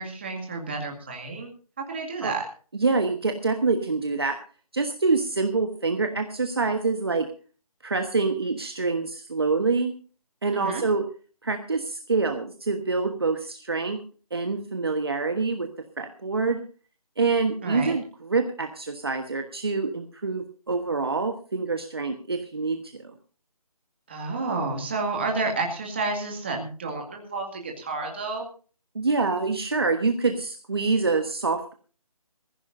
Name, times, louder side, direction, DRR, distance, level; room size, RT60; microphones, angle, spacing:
voice 1, 0.0-1.5 1.8-2.4 10.5-10.8 17.6-17.9 24.1-28.5, right 3 dB, 15° right, 1 dB, 2.1 m, -30 dB
voice 2, 2.7-4.4 4.7-7.3 7.8-9.9 10.4-11.0 11.4-14.0 14.3-15.7 16.0-16.6 17.2-23.1 28.9-31.7, right 4 dB, 40° right, 6 dB, 1.3 m, -26 dB
20.5 x 15.0 x 2.6 m, 0.39 s
figure-of-eight pair, 180°, 20 cm